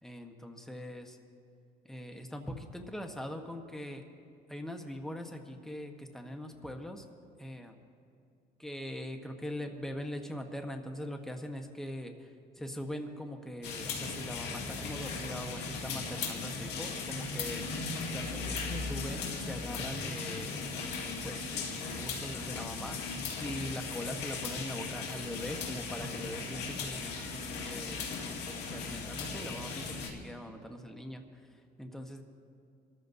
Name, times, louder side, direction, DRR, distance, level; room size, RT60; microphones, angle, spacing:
voice 1, 0.0-1.2 1.8-4.0 4.5-7.0 7.4-7.7 8.6-12.3 12.6-17.6 18.1-20.7 21.2-28.1 28.4-32.2, left 1 dB, ahead, 4 dB, 1.1 m, -42 dB
sound 1, 13.6-30.1, left 4 dB, 80° left, 2.3 m, -37 dB
26.5 x 13.5 x 2.7 m, 2.5 s
cardioid pair, 110°, 17 cm